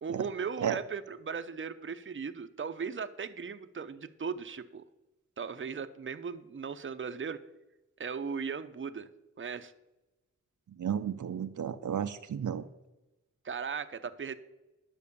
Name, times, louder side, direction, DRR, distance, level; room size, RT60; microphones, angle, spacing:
voice 1, 0.0-4.8 5.4-7.4 8.0-9.1 9.4-9.7 13.4-14.3, right 6 dB, 40° right, 10 dB, 0.7 m, -37 dB
voice 2, 10.8-12.7, right 8 dB, 75° right, 9 dB, 0.7 m, -33 dB
10.5 x 6.2 x 6.9 m, 1.0 s
wide cardioid pair, 75°, 31 cm